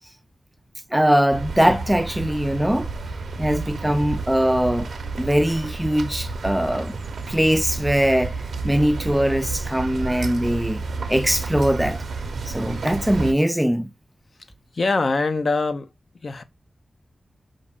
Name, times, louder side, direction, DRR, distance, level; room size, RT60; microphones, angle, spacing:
voice 1, 0.9-2.9 3.4-4.9 5.2-6.9 7.3-8.4 8.6-10.8 11.1-12.0 12.5-13.9, equal, 5° right, 0.3 m, -21 dB
sound 1, 1.3-13.3, right 3 dB, 85° right, 0.6 m, -31 dB
voice 2, 14.7-15.9 16.2-16.4, left 3 dB, 55° left, 0.5 m, -23 dB
5.2 x 2.5 x 3.4 m
wide cardioid pair, 95°, 0 cm